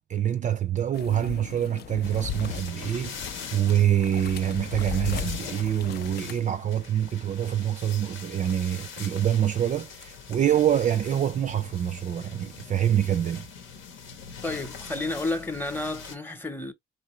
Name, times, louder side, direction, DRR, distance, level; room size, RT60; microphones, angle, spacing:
voice 1, 0.0-13.5, right 10 dB, 40° right, 0.4 m, -26 dB
sound 1, 0.9-6.4, left 8 dB, 55° left, 0.4 m, -37 dB
sound 2, 2.0-16.2, left 6 dB, 80° left, 1.0 m, -43 dB
voice 2, 14.4-16.7, left 2 dB, 10° left, 0.8 m, -31 dB
3.7 x 3.0 x 3.0 m
cardioid pair, 90°, 20 cm